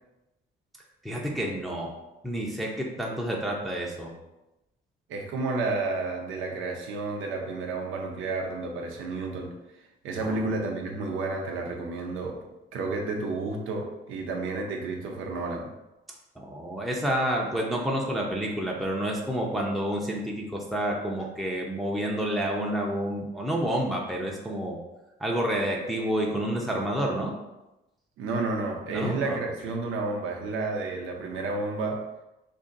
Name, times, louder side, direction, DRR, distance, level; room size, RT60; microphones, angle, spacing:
voice 1, 1.0-4.2 10.2-10.4 16.4-24.8 25.2-27.3 28.9-29.4, right 1 dB, ahead, -2 dB, 0.6 m, -29 dB
voice 2, 5.1-9.5 10.0-12.4 12.7-15.7 28.2-32.1, right 3 dB, 85° right, 1 dB, 0.6 m, -31 dB
2.7 x 2.7 x 3.8 m, 0.96 s
cardioid pair, 90°, 20 cm